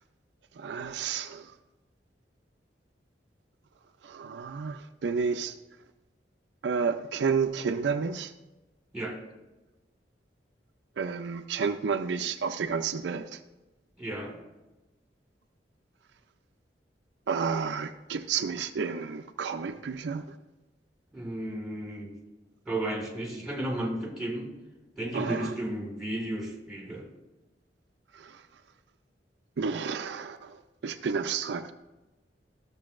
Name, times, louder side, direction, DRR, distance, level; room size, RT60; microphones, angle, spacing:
voice 1, 0.6-1.5 4.0-5.6 6.6-8.3 11.0-13.4 17.3-20.2 25.1-25.5 28.1-28.4 29.6-31.7, right 5 dB, 80° right, 8 dB, 0.4 m, -31 dB
voice 2, 14.0-14.4 21.1-22.2 22.7-24.5 25.0-27.1, right 1 dB, 5° right, -1 dB, 1.8 m, -33 dB
13.5 x 6.8 x 2.5 m, 1.1 s
head